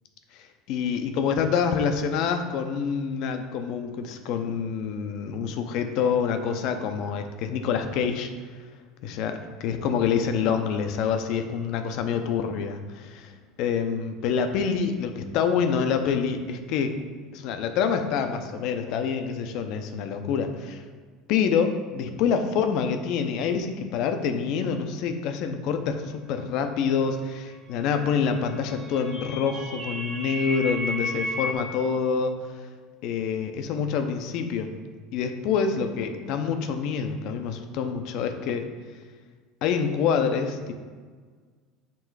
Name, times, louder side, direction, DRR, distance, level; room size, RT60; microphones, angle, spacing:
voice 1, 0.7-8.3 9.0-13.3 13.6-17.0 17.3-20.8 21.3-32.4 33.0-34.7 35.1-38.7 39.6-40.7, left 6 dB, 60° left, 7 dB, 0.6 m, -26 dB
sound 1, 28.4-31.5, left 1 dB, 55° right, 1.6 m, -33 dB
6.9 x 3.1 x 4.7 m, 1.5 s
hypercardioid pair, 80°, 0 cm